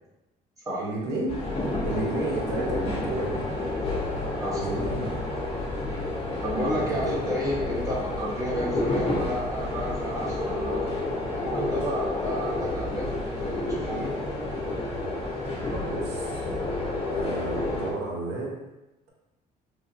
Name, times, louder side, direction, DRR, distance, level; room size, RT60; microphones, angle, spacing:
voice 1, 0.8-1.3 1.8-3.4 4.6-5.1 6.9-7.1 15.7-16.5 17.1-18.5, right 2 dB, 75° right, -3 dB, 0.8 m, -31 dB
sound 1, 1.3-17.9, left 2 dB, 40° left, 0.8 m, -30 dB
voice 2, 4.4-4.7 6.4-10.9 11.4-14.1, equal, 20° right, -6 dB, 1.0 m, -31 dB
3.2 x 2.2 x 2.7 m, 0.97 s
cardioid pair, 110°, 17 cm